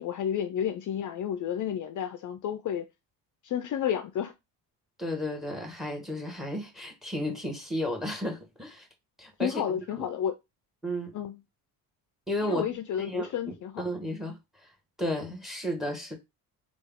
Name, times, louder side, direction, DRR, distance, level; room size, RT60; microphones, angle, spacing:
voice 1, 0.0-2.9 3.4-4.3 9.4-10.3 11.1-11.4 12.4-13.8, left 9 dB, 50° left, 0.5 m, -31 dB
voice 2, 5.0-8.9 9.2-9.6 10.0-10.1 10.8-11.1 12.3-12.6 13.0-13.3 13.8-14.7 15.0-16.2, equal, ahead, 1.4 m, -33 dB
3.3 x 2.5 x 3.6 m
supercardioid pair, 80°, 41 cm